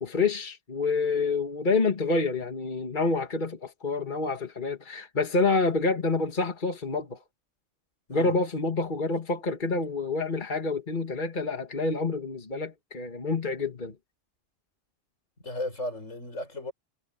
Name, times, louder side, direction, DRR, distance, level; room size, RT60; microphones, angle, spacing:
voice 1, 0.0-7.2 8.1-14.0, left 3 dB, 40° left, 2.1 m, -28 dB
voice 2, 15.4-16.7, left 1 dB, 85° left, 6.6 m, -35 dB
omnidirectional pair, 1.3 m